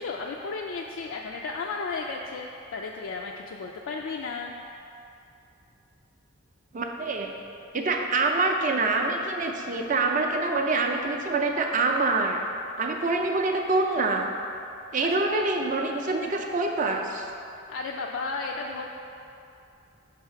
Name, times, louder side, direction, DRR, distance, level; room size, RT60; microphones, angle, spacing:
voice 1, 0.0-4.5 15.3-15.4 17.7-18.9, left 4 dB, 65° left, -1 dB, 0.3 m, -34 dB
voice 2, 6.7-7.3 7.7-12.5 12.8-14.3 14.9-17.3, right 3 dB, 35° right, 2 dB, 0.4 m, -25 dB
5.5 x 3.4 x 5.7 m, 2.7 s
head